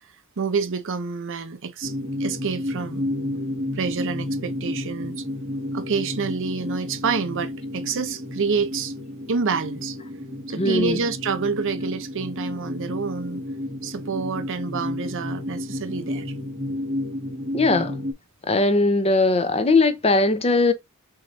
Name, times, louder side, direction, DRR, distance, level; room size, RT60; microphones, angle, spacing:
voice 1, 0.4-1.9 2.2-3.0 3.7-5.2 5.7-8.9 9.3-10.0 10.5-13.4 13.8-16.3, right 5 dB, 60° right, 0.7 m, -28 dB
sound 1, 1.8-18.1, left 1 dB, 40° right, 2.0 m, -31 dB
voice 2, 10.6-11.0 17.5-17.9 18.5-20.7, left 2 dB, 30° left, 0.8 m, -19 dB
6.5 x 2.9 x 2.6 m
head